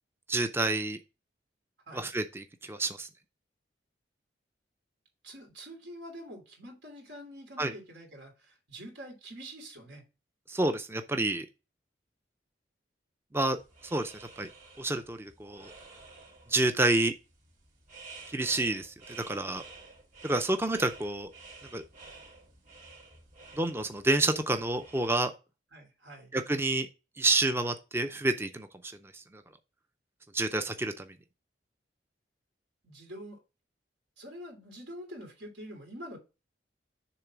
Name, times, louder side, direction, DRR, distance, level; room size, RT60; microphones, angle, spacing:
voice 1, 0.3-1.0 1.9-3.1 7.6-7.7 10.5-11.5 13.3-14.5 14.8-15.7 16.5-17.1 18.3-19.6 20.2-21.3 21.7-21.8 23.6-25.3 26.3-26.9 27.2-28.7 29.1-29.4 30.3-31.1, right 2 dB, 15° right, 0.5 m, -29 dB
voice 2, 5.2-10.0 25.7-26.3 32.8-33.4 34.2-36.2, equal, 90° right, 2.9 m, -46 dB
sound 1, 13.6-25.1, right 3 dB, 45° right, 2.5 m, -52 dB
6.9 x 3.3 x 6.0 m
head